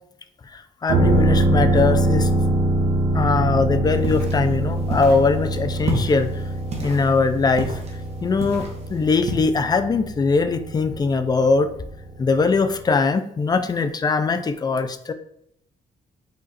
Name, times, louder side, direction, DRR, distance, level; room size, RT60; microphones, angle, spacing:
voice 1, 0.5-2.3 3.1-6.3 6.8-7.7 8.2-11.7 12.2-15.1, left 4 dB, 25° left, 10 dB, 0.4 m, -21 dB
sound 1, 0.9-12.4 12.8-12.9, right 1 dB, 85° right, 1.0 m, -23 dB
sound 2, 3.9-9.3, right 2 dB, 45° right, 1.0 m, -32 dB
5.0 x 2.4 x 4.0 m, 0.72 s
cardioid pair, 120°, 15 cm